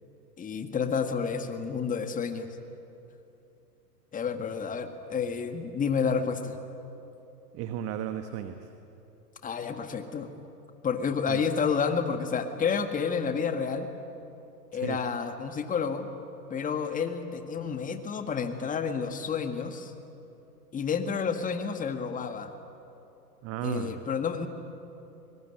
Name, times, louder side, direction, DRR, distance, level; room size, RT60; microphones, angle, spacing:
voice 1, 0.4-2.5 4.1-6.6 9.4-10.3 10.8-13.9 14.7-16.1 16.5-19.9 20.7-22.5 23.6-24.5, left 6 dB, 15° left, 7 dB, 1.8 m, -30 dB
voice 2, 7.5-8.7 11.3-11.4 14.7-15.0 23.4-24.0, right 10 dB, 30° right, 9 dB, 1.2 m, -34 dB
24.0 x 22.5 x 9.9 m, 2.9 s
hypercardioid pair, 125°, 49 cm